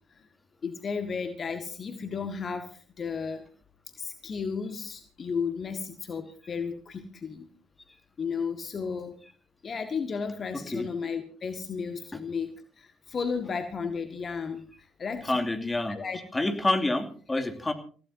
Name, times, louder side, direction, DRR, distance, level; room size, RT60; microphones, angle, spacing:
voice 1, 0.6-3.4 4.0-7.5 8.2-9.2 9.6-12.5 12.8-15.4 15.9-16.2 17.4-17.5, left 5 dB, 40° left, 7 dB, 1.9 m, -34 dB
voice 2, 15.3-16.0 16.3-17.7, left 2 dB, 20° left, 4 dB, 2.7 m, -27 dB
28.0 x 16.0 x 2.8 m, 0.41 s
figure-of-eight pair, 45°, 0 cm